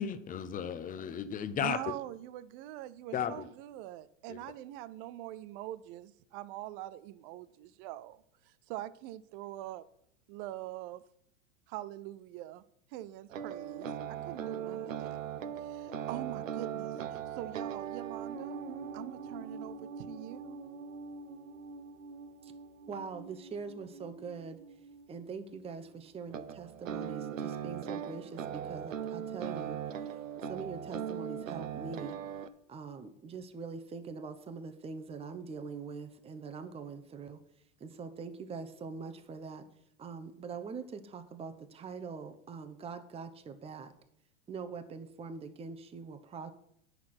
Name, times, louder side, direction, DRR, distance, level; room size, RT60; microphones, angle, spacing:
voice 1, 0.0-1.9 3.1-3.5 4.3-4.4, left 8 dB, 20° left, 0.8 m, -35 dB
voice 2, 1.6-8.2 8.7-9.8 10.3-11.0 11.7-12.6 12.9-15.2 15.6-18.6 18.9-20.6, right 14 dB, 45° right, 0.6 m, -43 dB
sound 1, 13.3-25.2 26.3-32.5, right 8 dB, 90° right, 0.9 m, -40 dB
voice 3, 22.9-24.6 25.1-29.8 30.5-32.2 32.7-37.4 37.8-39.6 40.0-43.9 44.5-46.5, right 5 dB, 15° right, 0.9 m, -43 dB
9.4 x 6.5 x 6.0 m
hypercardioid pair, 115°, 38 cm